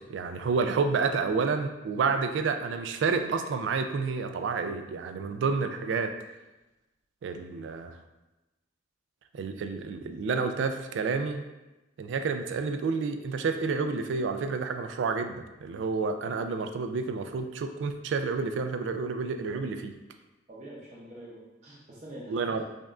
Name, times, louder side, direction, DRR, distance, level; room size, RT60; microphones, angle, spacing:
voice 1, 0.0-6.1 7.2-8.0 9.3-11.4 12.0-19.9 22.3-22.6, right 4 dB, 90° right, 7 dB, 0.3 m, -29 dB
voice 2, 20.5-22.6, right 1 dB, 40° right, -6 dB, 0.6 m, -46 dB
5.1 x 2.4 x 2.4 m, 1.0 s
head